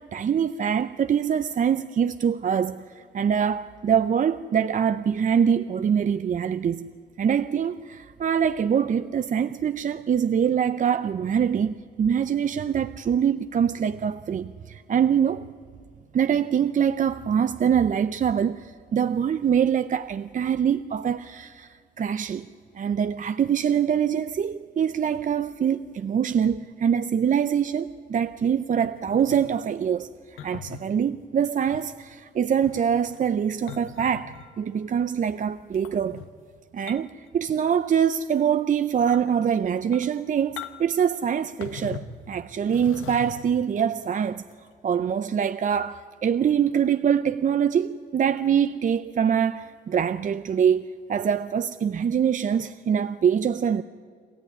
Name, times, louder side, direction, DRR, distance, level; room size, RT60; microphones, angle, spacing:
voice 1, 0.0-6.9 7.2-15.5 16.1-22.5 22.7-30.1 30.4-36.2 36.7-44.4 44.8-53.8, right 8 dB, 40° right, 0.6 m, -24 dB
sound 1, 28.8-29.6 30.4-30.8 31.7-31.9 32.5-34.6 35.7-36.3 36.9-37.2 37.5-38.0 38.4-38.5 39.0-39.3 39.8-40.2 40.6-41.0 41.6-42.2 42.7-43.6 44.5-44.7, left 8 dB, 85° left, 1.2 m, -41 dB
28.0 x 13.5 x 9.7 m
cardioid pair, 90°, 20 cm